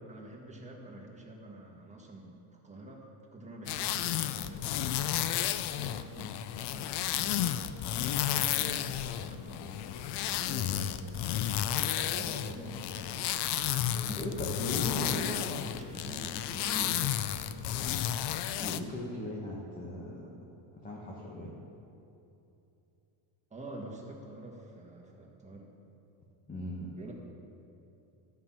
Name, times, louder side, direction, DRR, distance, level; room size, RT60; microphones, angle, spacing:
voice 1, 0.1-7.7 7.9-10.6 12.1-14.6 14.9-17.0 17.7-18.1 23.5-25.7 27.0-27.1, right 2 dB, 15° right, -1 dB, 1.6 m, -47 dB
sound 1, 3.7-18.8, left 11 dB, 55° left, 0.6 m, -32 dB
voice 2, 10.2-11.3 14.1-15.4 16.7-17.0 18.6-20.3 20.8-21.5 26.5-26.9, left 1 dB, 15° left, -3 dB, 1.3 m, -38 dB
13.0 x 5.8 x 7.5 m, 2.8 s
cardioid pair, 150°, 48 cm